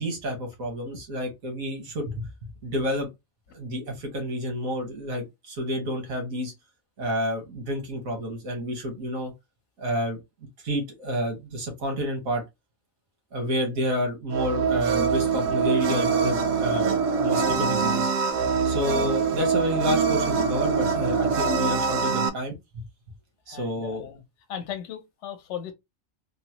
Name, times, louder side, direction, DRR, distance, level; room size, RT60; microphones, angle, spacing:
voice 1, 0.0-3.1 3.5-6.5 7.0-9.3 9.8-10.2 10.6-12.4 13.3-18.1 18.6-22.5 23.5-24.1, equal, 90° right, 1.7 m, -29 dB
sound 1, 14.3-22.3, right 5 dB, 75° right, 0.9 m, -24 dB
voice 2, 23.5-24.2 24.5-25.7, left 9 dB, 60° left, 1.0 m, -37 dB
3.8 x 2.0 x 2.9 m
omnidirectional pair, 1.4 m